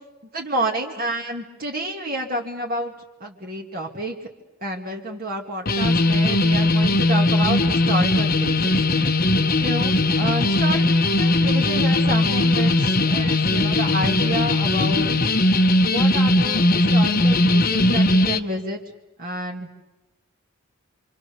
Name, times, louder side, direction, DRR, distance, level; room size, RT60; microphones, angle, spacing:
voice 1, 0.3-2.9 3.2-4.2 4.6-8.8 9.6-15.2 15.9-18.8 19.2-19.7, right 1 dB, 40° right, 0 dB, 2.1 m, -29 dB
sound 1, 5.7-18.4, left 2 dB, 40° left, 1.1 m, -19 dB
26.5 x 26.5 x 6.8 m, 1.1 s
head